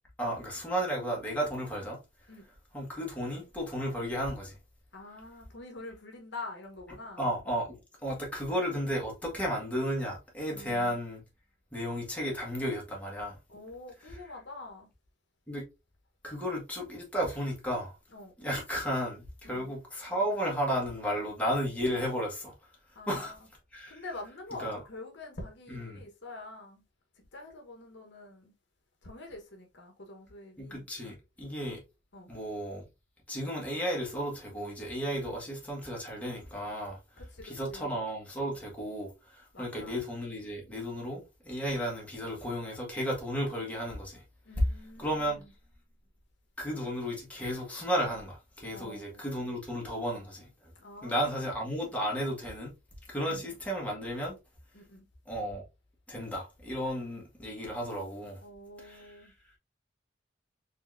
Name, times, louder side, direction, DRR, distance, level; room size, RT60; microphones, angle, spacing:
voice 1, 0.2-2.0 2.7-4.6 7.2-11.2 11.7-13.4 14.1-14.2 15.5-15.6 16.2-17.9 18.4-22.5 23.1-23.3 23.7-24.0 24.6-24.8 25.7-26.0 30.6-31.8 32.3-32.8 33.3-37.0 37.4-44.2 45.0-45.4 46.6-50.5 51.0-52.7 53.1-54.3 55.3-55.6 56.1-58.4 58.8-59.1, equal, 10° left, 1.6 m, -33 dB
voice 2, 4.9-7.3 10.5-11.0 13.5-14.9 18.1-18.3 19.4-19.7 22.9-23.4 23.9-26.8 27.3-28.5 29.0-30.8 32.1-32.3 37.2-38.0 39.5-39.9 44.4-45.5 48.7-49.3 50.7-51.7 53.2-53.5 54.7-55.0 58.4-59.3, left 2 dB, 65° left, 1.2 m, -46 dB
4.1 x 3.6 x 2.6 m
head